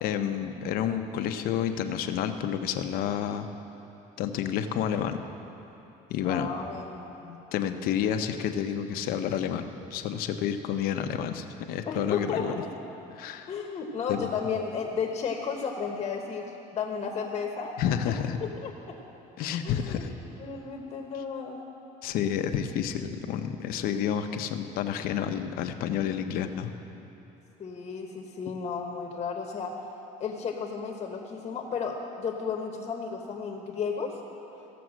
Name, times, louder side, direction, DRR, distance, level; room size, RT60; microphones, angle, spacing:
voice 1, 0.0-3.5 4.2-5.2 6.1-6.5 7.5-12.5 13.1-13.5 14.1-14.3 17.8-18.4 19.4-20.1 22.0-26.7, left 9 dB, 65° left, 7 dB, 0.8 m, -30 dB
voice 2, 6.2-7.4 11.9-12.7 13.5-16.5 16.7-18.1 18.4-18.7 19.6-20.0 20.4-21.6 27.6-29.7 30.2-34.1, left 6 dB, 35° left, 2 dB, 1.1 m, -33 dB
16.0 x 6.9 x 6.3 m, 3.0 s
cardioid pair, 135°, 16 cm